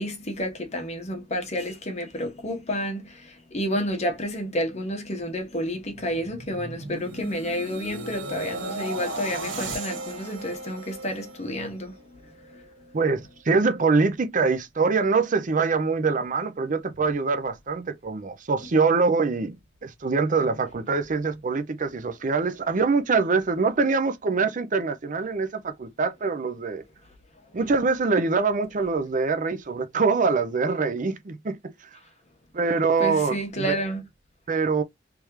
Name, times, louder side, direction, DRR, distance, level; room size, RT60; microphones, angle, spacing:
voice 1, 0.0-11.9 12.2-12.6 33.0-34.0, equal, 35° left, 1.3 m, -30 dB
sound 1, 5.8-12.0 12.4-12.7, right 2 dB, 85° right, 1.7 m, -36 dB
voice 2, 12.9-26.8 27.5-31.9 32.5-33.8 34.5-34.8, right 4 dB, 40° right, 0.5 m, -24 dB
3.4 x 3.3 x 3.1 m
head